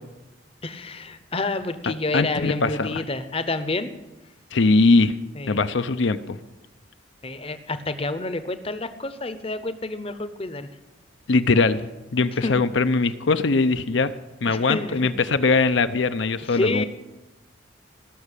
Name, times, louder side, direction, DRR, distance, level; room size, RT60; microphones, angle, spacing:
voice 1, 0.6-3.9 5.3-5.6 7.2-10.7 12.4-12.6 14.4-15.1 16.4-16.8, left 2 dB, 30° left, 11 dB, 0.8 m, -29 dB
voice 2, 2.1-2.9 4.5-5.2 5.5-6.4 11.3-11.8 12.1-14.1 14.4-16.8, left 3 dB, 70° left, 11 dB, 0.6 m, -21 dB
17.5 x 6.6 x 8.3 m, 1.0 s
head